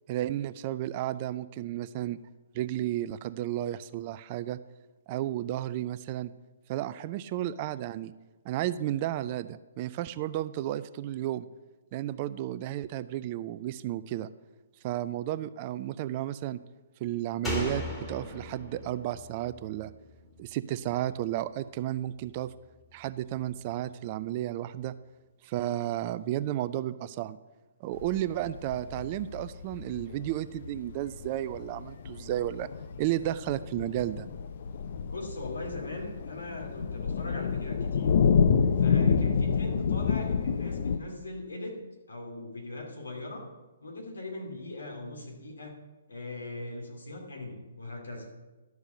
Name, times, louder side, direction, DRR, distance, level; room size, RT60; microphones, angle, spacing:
voice 1, 0.1-2.2 2.5-4.6 5.1-6.3 6.7-8.1 8.4-11.5 11.9-14.3 14.8-16.6 17.0-17.8 18.1-19.9 20.4-22.5 22.9-24.9 25.4-27.4 27.8-32.7 33.0-34.3, right 13 dB, 35° right, 14 dB, 0.4 m, -32 dB
Slam, 17.4-20.9 21.2-21.3, left 1 dB, 10° left, 2.2 m, -37 dB
sound 1, 28.0-41.0, left 6 dB, 50° left, 0.6 m, -28 dB
voice 2, 35.1-38.2 38.8-41.8 42.1-43.4 43.8-45.8 46.1-48.3, left 2 dB, 75° left, 1 dB, 2.5 m, -40 dB
12.0 x 4.8 x 6.7 m, 1.2 s
figure-of-eight pair, 130°, 0 cm